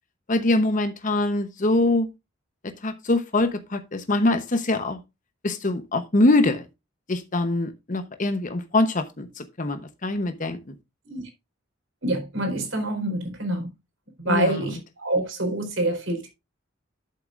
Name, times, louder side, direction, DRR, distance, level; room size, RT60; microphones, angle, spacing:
voice 1, 0.3-2.1 2.8-5.0 5.4-6.6 7.1-10.6 14.3-14.5, left 2 dB, 40° left, 0.9 m, -23 dB
voice 2, 12.0-13.7 14.2-16.3, right 1 dB, 75° right, 3.9 m, -26 dB
11.5 x 7.2 x 2.5 m
head